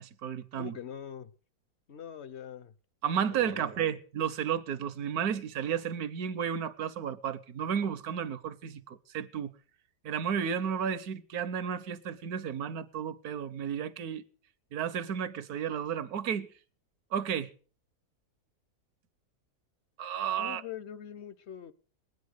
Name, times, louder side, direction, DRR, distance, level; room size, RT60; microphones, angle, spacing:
voice 1, 0.0-0.8 3.0-9.5 10.0-14.2 14.7-16.5 17.1-17.5 20.0-20.6, right 8 dB, 70° right, 1.4 m, -32 dB
voice 2, 0.6-1.3 1.9-2.7 3.3-3.6 20.4-21.7, left 9 dB, 50° left, 1.0 m, -43 dB
21.0 x 9.4 x 6.5 m
omnidirectional pair, 1.7 m